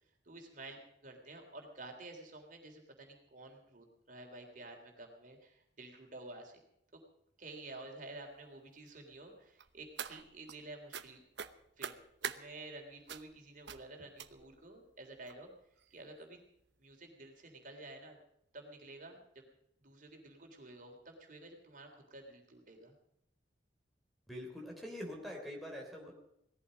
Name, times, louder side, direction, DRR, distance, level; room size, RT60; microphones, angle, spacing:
voice 1, 0.2-6.6 6.9-7.0 7.4-11.2 11.8-15.5 15.9-16.4 16.8-18.2 18.5-19.4 19.8-22.9, right 2 dB, 50° right, 3 dB, 3.5 m, -51 dB
sound 1, 9.6-10.6 10.9-11.1 11.4-12.4 13.1-13.3 13.7-13.8 14.2-14.6 15.3-15.4 15.8-15.9 16.2-16.3, right 7 dB, 80° right, 1.0 m, -43 dB
voice 2, 24.3-26.1, equal, ahead, -2 dB, 3.4 m, -44 dB
19.0 x 14.0 x 5.2 m, 0.78 s
head